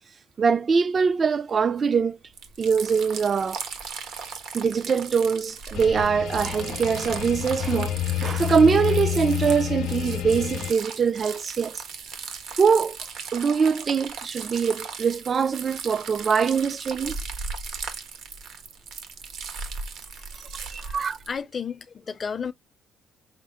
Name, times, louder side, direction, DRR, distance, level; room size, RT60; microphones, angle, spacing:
voice 1, 0.4-2.2 2.6-3.6 4.5-11.8 12.5-13.0 13.3-17.2 20.4-21.2, right 6 dB, 45° right, 0.4 m, -23 dB
sound 1, 2.3-21.3, right 5 dB, 80° right, 1.3 m, -37 dB
sound 2, 5.7-10.7, left 12 dB, 80° left, 0.7 m, -29 dB
voice 2, 21.3-22.5, left 6 dB, 40° left, 0.5 m, -33 dB
5.9 x 2.0 x 3.5 m
cardioid pair, 90°, 0 cm